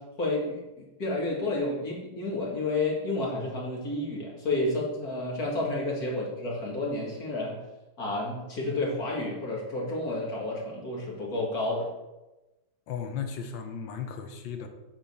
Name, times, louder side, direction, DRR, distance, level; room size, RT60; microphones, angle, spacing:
voice 1, 0.0-7.6 8.0-11.9, left 2 dB, 45° left, -4 dB, 2.7 m, -30 dB
voice 2, 12.9-14.7, left 7 dB, 65° left, 5 dB, 1.7 m, -35 dB
8.3 x 4.4 x 7.2 m, 1.0 s
omnidirectional pair, 2.4 m